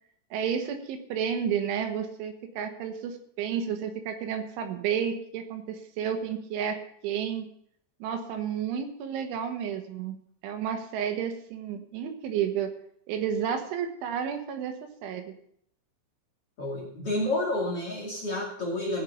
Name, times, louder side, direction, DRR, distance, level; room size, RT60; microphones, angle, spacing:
voice 1, 0.3-6.8 7.0-7.5 8.0-10.2 10.4-12.7 13.1-15.3, right 8 dB, 75° right, 5 dB, 3.5 m, -31 dB
voice 2, 16.6-19.0, left 1 dB, 40° left, -2 dB, 2.3 m, -30 dB
16.5 x 6.4 x 6.9 m, 0.69 s
omnidirectional pair, 5.7 m